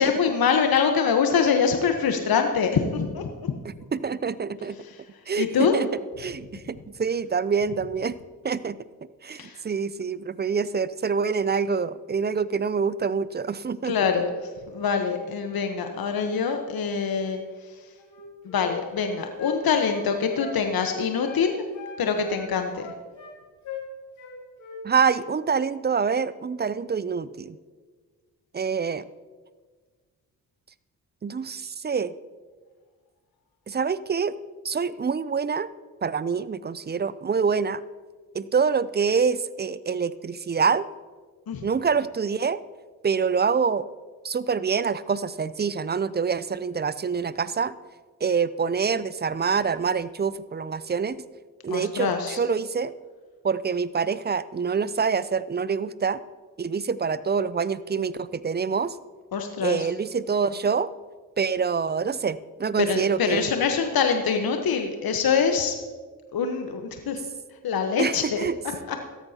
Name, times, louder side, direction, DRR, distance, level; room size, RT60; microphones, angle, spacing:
voice 1, 0.0-3.5 4.8-5.0 5.4-5.7 9.4-9.6 13.8-14.3 14.7-17.4 18.4-21.6 22.0-22.9 41.5-41.6 51.7-52.4 59.3-59.9 62.8-65.8 66.3-67.2 67.6-68.4 68.9-69.0, left 6 dB, 55° left, 5 dB, 1.1 m, -24 dB
voice 2, 3.9-4.8 5.3-5.9 6.2-8.2 8.4-8.8 9.2-13.9 24.8-27.6 28.5-29.1 31.2-32.1 33.7-34.4 34.6-35.7 36.0-37.8 38.3-40.9 41.6-42.6 43.0-43.9 44.2-47.7 48.2-51.2 51.6-52.9 53.4-56.2 56.6-58.9 59.6-60.9 61.4-63.5 68.0-68.6, right 6 dB, 25° right, 17 dB, 0.5 m, -26 dB
Wind instrument woodwind instrument, 18.0-21.5 21.7-23.4 23.6-23.9 24.2-24.8 25.1-25.3, left 4 dB, 75° left, 2.9 m, -39 dB
16.0 x 13.0 x 2.9 m, 1.5 s
hypercardioid pair, 40°, 43 cm